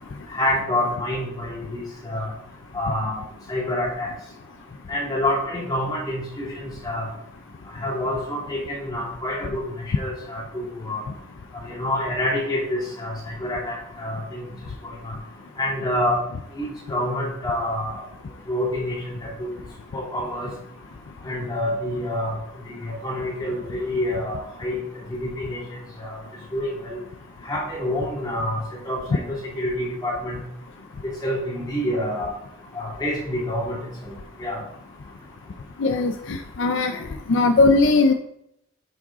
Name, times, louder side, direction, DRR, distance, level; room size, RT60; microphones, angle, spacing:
voice 1, 0.3-2.3 2.7-4.1 4.9-7.1 7.8-11.0 11.6-14.5 14.8-15.2 15.6-16.2 16.6-18.0 18.5-19.5 19.9-20.5 21.2-22.4 22.7-24.8 25.1-25.6 26.0-26.2 26.5-27.0 27.4-30.4 31.0-32.3 32.7-33.8 34.0-34.1 34.4-34.6 36.7-36.8, left 1 dB, 20° left, -5 dB, 2.5 m, -27 dB
voice 2, 35.8-37.0 37.3-38.1, left 3 dB, 65° left, 6 dB, 0.4 m, -19 dB
9.4 x 3.6 x 3.8 m, 0.76 s
head